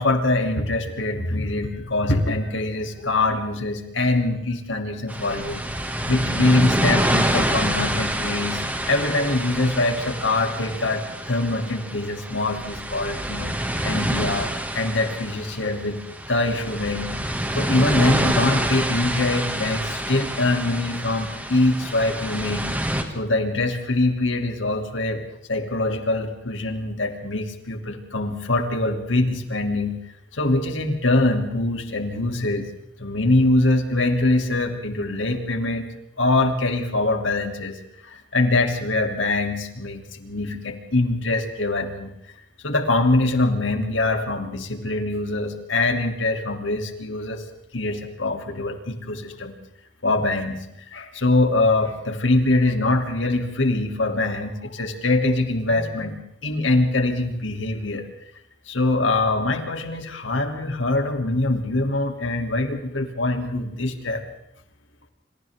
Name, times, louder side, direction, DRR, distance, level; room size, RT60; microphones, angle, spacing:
voice 1, 0.0-5.6 6.1-16.0 16.3-17.1 17.5-22.7 23.1-30.0 30.3-32.7 33.0-35.9 36.2-37.8 38.0-42.1 42.6-47.4 47.7-49.6 50.0-50.6 50.9-58.1 58.7-64.2, left 2 dB, 80° left, 5 dB, 3.1 m, -23 dB
sound 1, 5.1-23.0, right 1 dB, 10° right, 2.1 m, -27 dB
28.0 x 26.0 x 3.7 m, 0.84 s
head